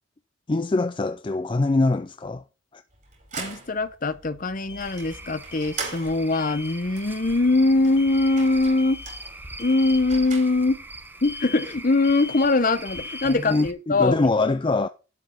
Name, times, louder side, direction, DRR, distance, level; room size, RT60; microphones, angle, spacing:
voice 1, 0.5-2.4 2.7-2.8 13.2-14.9, left 2 dB, 25° left, 0.4 m, -23 dB
sound 1, 1.4-1.5 4.7-6.1 6.3-6.8 8.0-8.5 8.8-9.3 9.6-10.1 11.2-11.8 12.0-12.6 12.8-13.4, left 5 dB, 60° left, 1.6 m, -41 dB
sound 2, 2.9-10.9, right 4 dB, 40° right, 4.7 m, -41 dB
voice 2, 3.4-9.0 9.6-10.8 11.2-14.2, left 2 dB, 45° left, 0.8 m, -22 dB
Cricket / Frog, 4.8-13.7, right 2 dB, 10° right, 1.0 m, -42 dB
12.0 x 5.4 x 5.7 m
head